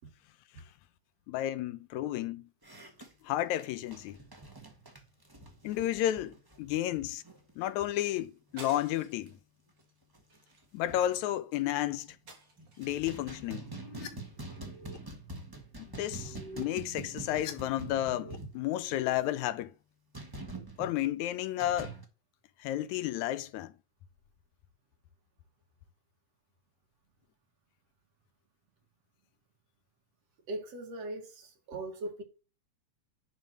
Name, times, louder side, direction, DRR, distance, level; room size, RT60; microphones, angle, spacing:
voice 1, 1.3-2.5 3.2-4.2 5.6-7.2 7.6-9.3 10.7-12.1 12.8-13.7 15.8-19.7 20.8-22.0 22.6-23.7, left 13 dB, 90° left, 2.0 m, -32 dB
sound 1, 2.6-7.7 7.9-8.1 8.5-8.9 9.3-9.4 9.8-9.9 10.1-11.2 11.8-12.3 12.6-19.0 20.1-20.9 21.6-22.0, right 2 dB, 15° right, 0.9 m, -45 dB
sound 2, 8.6-9.3 9.8-10.0 10.3-11.3 12.3-13.0, right 3 dB, 40° right, 3.3 m, -51 dB
sound 3, 13.4-14.1 14.4-15.0 16.0-17.5 17.8-18.4 18.7-19.1, left 3 dB, 50° left, 1.4 m, -47 dB
voice 2, 30.5-32.2, right 2 dB, 60° right, 2.9 m, -39 dB
10.5 x 3.9 x 6.6 m
omnidirectional pair, 3.3 m